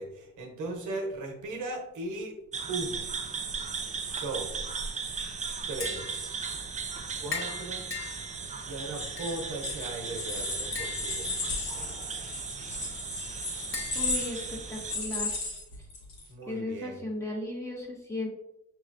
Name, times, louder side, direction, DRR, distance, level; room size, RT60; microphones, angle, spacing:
voice 1, 0.0-2.3 2.7-3.1 4.1-4.8 5.7-6.4 7.2-7.9 8.6-13.1 16.3-17.0, right 2 dB, 85° right, 2 dB, 1.1 m, -38 dB
sound 1, 2.5-15.0, right 5 dB, 25° right, 0.4 m, -37 dB
Tap, 5.6-15.1, left 5 dB, 45° left, 1.3 m, -43 dB
sound 2, 8.9-16.2, left 3 dB, 75° left, 1.4 m, -35 dB
voice 2, 13.9-15.4 16.5-18.3, left 2 dB, 10° left, -2 dB, 1.3 m, -36 dB
5.7 x 3.0 x 2.5 m, 0.84 s
cardioid pair, 90°, 30 cm